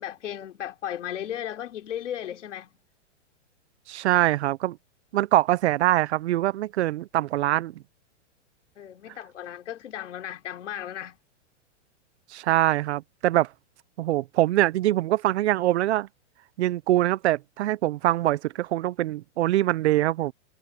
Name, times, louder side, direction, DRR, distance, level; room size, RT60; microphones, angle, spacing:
voice 1, 0.0-2.7 8.8-11.2, left 11 dB, 75° left, 3.4 m, -35 dB
voice 2, 3.9-4.8 5.1-7.7 12.3-13.5 14.0-16.1 16.6-20.3, right 15 dB, 65° right, 0.5 m, -23 dB
hypercardioid pair, 165°, 37 cm